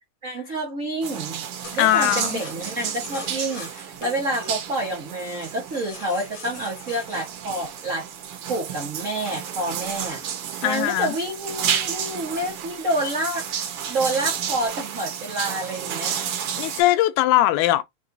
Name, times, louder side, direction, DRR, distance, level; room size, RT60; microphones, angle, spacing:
voice 1, 0.2-1.4 1.7-8.1 8.5-10.2 10.6-13.4 13.9-16.2, right 1 dB, 85° right, 0.6 m, -28 dB
sound 1, 1.0-16.8, right 8 dB, 70° right, 1.4 m, -31 dB
sound 2, 1.6-8.5 9.1-11.5 11.9-12.0 12.3-12.6 13.1-13.8 14.1-14.7, left 4 dB, 60° left, 0.9 m, -42 dB
voice 2, 1.8-2.4 10.6-11.1 16.6-17.8, left 15 dB, 85° left, 2.0 m, -20 dB
4.2 x 3.8 x 2.6 m
omnidirectional pair, 3.4 m